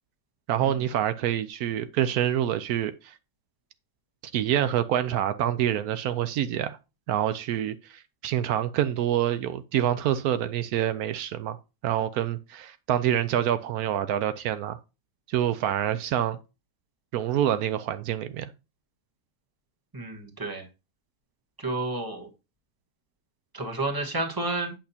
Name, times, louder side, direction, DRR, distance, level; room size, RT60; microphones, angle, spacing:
voice 1, 0.5-3.1 4.3-6.8 7.1-11.6 11.8-14.8 15.3-16.4 17.1-18.5, right 11 dB, 80° right, 1.1 m, -26 dB
voice 2, 19.9-20.7 21.6-22.3 23.5-24.7, right 2 dB, 15° right, 1.2 m, -31 dB
8.5 x 5.9 x 2.8 m
omnidirectional pair, 1.6 m